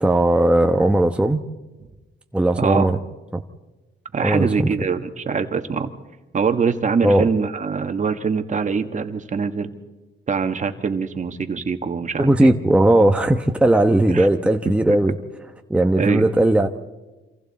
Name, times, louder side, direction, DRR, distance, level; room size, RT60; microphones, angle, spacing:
voice 1, 0.0-1.4 2.3-3.0 4.2-4.9 7.0-7.3 12.2-15.2 15.7-16.7, right 1 dB, 5° right, 5 dB, 1.1 m, -17 dB
voice 2, 2.6-2.9 4.1-5.9 6.3-9.7 10.3-12.5 14.1-14.3 14.7-14.8 16.0-16.3, right 5 dB, 40° right, 7 dB, 1.8 m, -23 dB
28.0 x 26.5 x 4.3 m, 1.1 s
cardioid pair, 90°, 20 cm